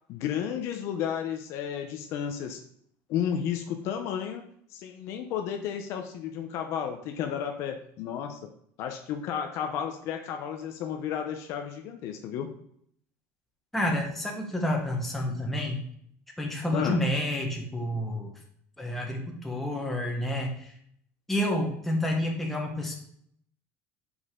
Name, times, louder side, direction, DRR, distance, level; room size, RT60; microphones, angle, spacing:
voice 1, 0.1-2.6 3.1-4.4 4.7-8.5 8.8-12.5 16.7-17.0, left 8 dB, 50° left, 5 dB, 0.7 m, -32 dB
voice 2, 13.7-15.9 16.4-18.3 18.8-20.7 21.3-22.9, left 1 dB, 5° left, -1 dB, 1.1 m, -29 dB
6.3 x 5.2 x 3.7 m, 0.67 s
cardioid pair, 165°, 6 cm